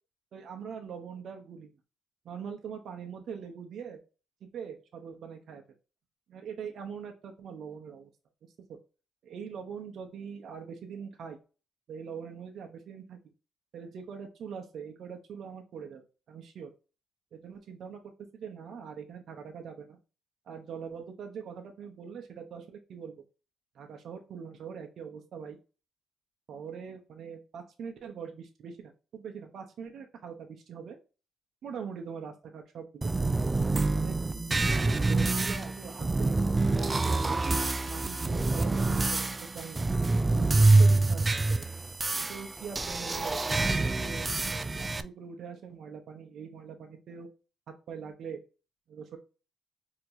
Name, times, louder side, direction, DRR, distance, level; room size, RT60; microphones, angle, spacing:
voice 1, 0.3-1.7 2.2-4.0 4.4-5.6 6.3-8.1 8.4-8.8 9.2-11.4 11.9-13.2 13.7-16.7 17.3-20.0 20.5-23.1 23.7-25.6 26.5-31.0 31.6-33.1 33.9-37.5 37.8-39.8 40.3-41.6 42.1-47.3 47.7-48.4 48.9-49.2, right 6 dB, 65° right, 4 dB, 0.8 m, -43 dB
sound 1, 33.0-45.0, right 3 dB, 25° right, 0.3 m, -26 dB
4.3 x 2.9 x 2.6 m, 0.33 s
cardioid pair, 90°, 0 cm